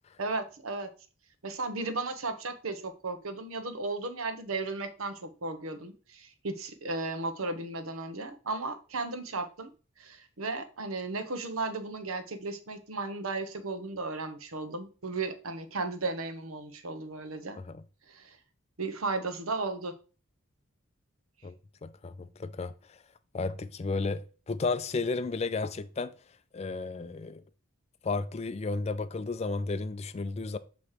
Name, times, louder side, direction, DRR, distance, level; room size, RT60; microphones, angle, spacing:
voice 1, 0.2-0.9 1.4-9.7 10.0-17.6 18.1-18.4 18.8-19.9, right 3 dB, 85° right, 0.9 m, -35 dB
voice 2, 21.8-22.7 23.3-24.2 24.5-26.1 26.5-27.4 28.0-30.6, left 3 dB, 30° left, 0.4 m, -33 dB
7.2 x 3.1 x 4.8 m
head